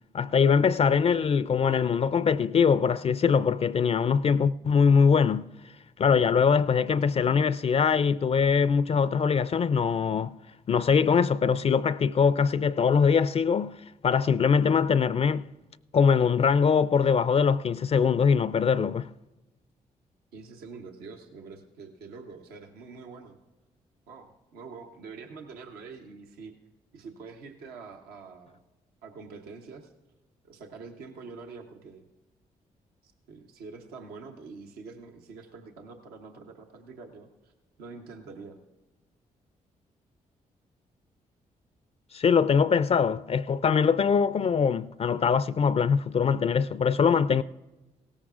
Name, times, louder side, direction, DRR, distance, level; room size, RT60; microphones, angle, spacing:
voice 1, 0.1-5.5 6.0-10.3 10.7-13.8 14.0-15.5 15.9-19.1 42.1-47.4, left 6 dB, 40° left, 0.4 m, -22 dB
voice 2, 20.3-23.4 24.1-26.5 26.9-28.6 29.0-29.9 30.4-32.0 33.0-37.5 37.8-38.6, right 4 dB, 85° right, 1.0 m, -45 dB
17.0 x 14.0 x 2.5 m
supercardioid pair, 50°, 16 cm